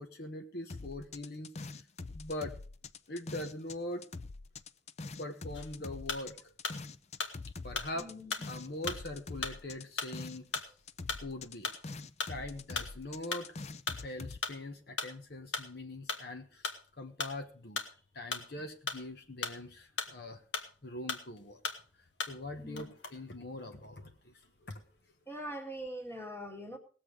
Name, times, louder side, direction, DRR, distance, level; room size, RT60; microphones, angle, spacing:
voice 1, 0.0-1.8 2.1-2.6 3.1-4.1 5.2-6.5 7.6-8.1 8.5-10.5 11.2-11.7 12.3-13.5 14.0-17.8 18.1-20.4 20.8-21.6 22.3-24.8, left 1 dB, 55° left, 5 dB, 1.2 m, -42 dB
sound 1, 0.7-3.8 4.0-10.6 10.9-14.4, left 3 dB, 35° left, 0.5 m, -44 dB
sound 2, 5.5-6.8 7.2-20.8 21.1-22.5 22.8-24.0 24.4-25.0, left 4 dB, 70° left, 1.9 m, -39 dB
voice 2, 8.0-8.3 22.6-22.9 25.3-26.8, equal, 10° left, 3 dB, 1.9 m, -42 dB
19.0 x 7.8 x 4.9 m, 0.41 s
head